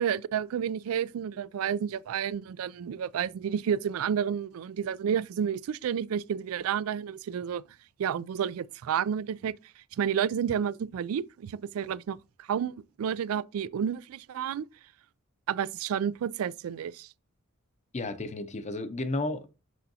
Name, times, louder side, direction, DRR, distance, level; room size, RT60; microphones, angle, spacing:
voice 1, 0.0-7.6 8.0-9.5 10.0-14.7 15.5-17.1, right 8 dB, 85° right, 0.3 m, -30 dB
voice 2, 17.9-19.5, left 2 dB, 35° left, 0.6 m, -32 dB
6.2 x 5.6 x 2.7 m
head